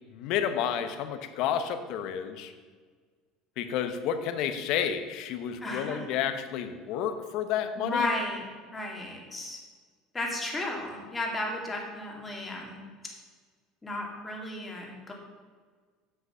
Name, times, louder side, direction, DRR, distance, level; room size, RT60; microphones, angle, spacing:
voice 1, 0.1-2.5 3.6-8.1, left 8 dB, 65° left, 9 dB, 0.9 m, -30 dB
voice 2, 5.6-6.2 7.8-8.4 8.7-9.6 10.1-12.8 13.8-15.1, left 2 dB, 15° left, 0 dB, 2.3 m, -34 dB
8.1 x 6.0 x 6.3 m, 1.5 s
supercardioid pair, 115°, 0 cm